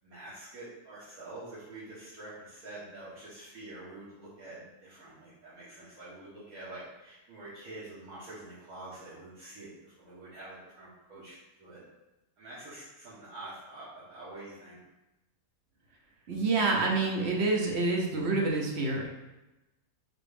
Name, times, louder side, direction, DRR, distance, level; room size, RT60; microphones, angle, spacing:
voice 1, 0.0-11.8 12.4-14.8, right 2 dB, 75° right, -10 dB, 1.7 m, -46 dB
voice 2, 16.3-19.1, right 3 dB, 55° right, -1 dB, 0.9 m, -27 dB
4.1 x 3.5 x 3.4 m, 0.99 s
omnidirectional pair, 1.6 m